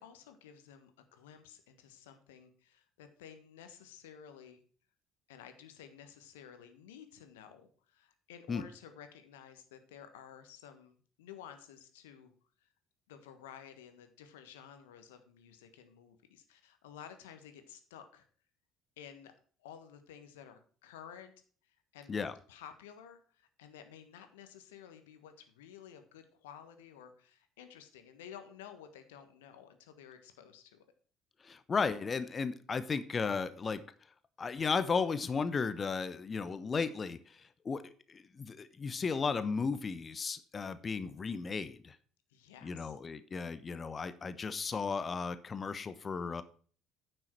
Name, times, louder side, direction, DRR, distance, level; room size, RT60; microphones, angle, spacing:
voice 1, 0.0-4.6 5.3-12.3 12.6-12.7 13.1-18.3 19.0-19.3 19.6-21.3 21.6-30.8 42.3-42.9, left 8 dB, 70° left, 8 dB, 1.4 m, -53 dB
voice 2, 31.4-33.8 34.4-42.0 42.6-46.4, left 5 dB, 30° left, 13 dB, 0.9 m, -35 dB
9.9 x 7.0 x 4.5 m, 0.43 s
figure-of-eight pair, 55°, 0 cm